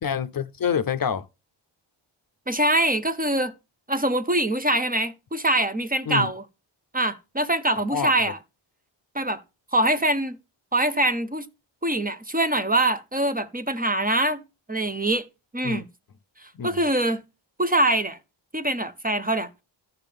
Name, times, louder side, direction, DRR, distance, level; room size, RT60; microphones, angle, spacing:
voice 1, 0.0-1.3 6.1-6.3 7.9-8.3 15.6-15.8 16.5-16.8, left 7 dB, 50° left, 0.6 m, -27 dB
voice 2, 2.5-3.5 3.9-6.4 6.9-8.4 9.1-9.4 9.7-10.4 10.7-11.5 11.8-14.4 14.7-15.3 15.5-15.8 16.4-17.2 17.6-18.2 18.5-19.5, right 1 dB, 20° right, 0.7 m, -24 dB
14.0 x 5.8 x 3.6 m
wide cardioid pair, 80°, 47 cm